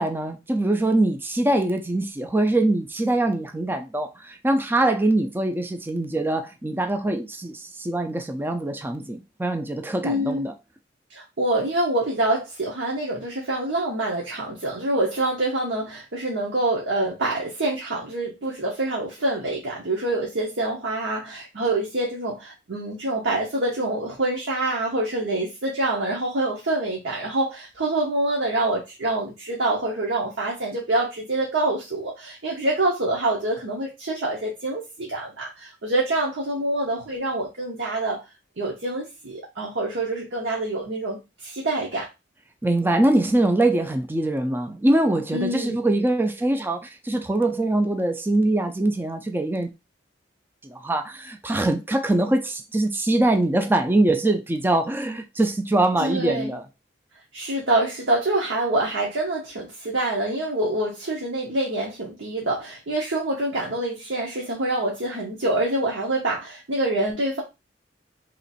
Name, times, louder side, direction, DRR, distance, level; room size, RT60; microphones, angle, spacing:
voice 1, 0.0-10.5 42.6-49.7 50.6-56.6, right 2 dB, 10° right, 0.4 m, -23 dB
voice 2, 10.0-10.5 11.1-38.2 38.6-42.1 45.3-45.8 56.0-56.5 57.3-67.4, right 2 dB, 70° right, 0.9 m, -26 dB
3.0 x 2.5 x 4.0 m
head